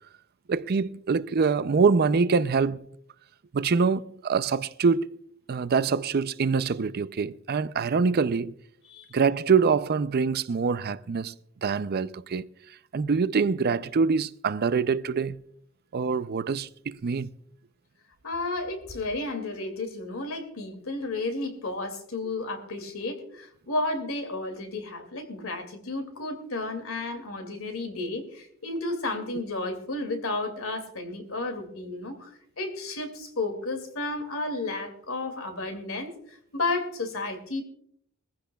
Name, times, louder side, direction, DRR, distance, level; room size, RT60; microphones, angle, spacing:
voice 1, 0.5-2.9 3.5-5.2 5.5-8.5 9.1-11.3 11.6-12.4 12.9-15.4 15.9-17.3, right 5 dB, 50° right, 0.5 m, -25 dB
voice 2, 18.2-32.3 32.6-37.6, left 2 dB, 80° left, 2.4 m, -32 dB
21.5 x 15.5 x 2.3 m
head